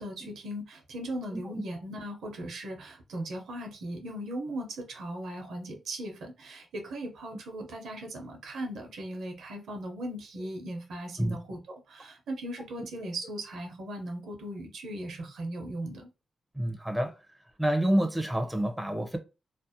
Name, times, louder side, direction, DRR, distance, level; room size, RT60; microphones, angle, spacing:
voice 1, 0.0-16.1, right 1 dB, 80° right, 0.7 m, -38 dB
voice 2, 1.3-1.6 11.2-11.3 16.5-17.2 17.6-19.2, right 1 dB, 10° right, 0.5 m, -28 dB
2.5 x 2.0 x 2.7 m
cardioid pair, 65°, 0 cm